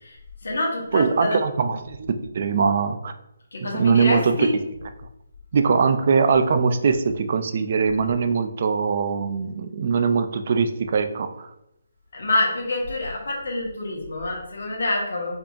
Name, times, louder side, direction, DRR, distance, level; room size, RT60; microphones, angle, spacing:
voice 1, 0.4-1.4 3.5-4.5 12.1-15.4, left 2 dB, 75° left, -1 dB, 1.3 m, -26 dB
voice 2, 0.9-3.1 3.6-4.5 5.5-11.5, right 5 dB, 40° right, 8 dB, 0.3 m, -21 dB
4.5 x 2.7 x 2.5 m, 0.82 s
hypercardioid pair, 170°, 0 cm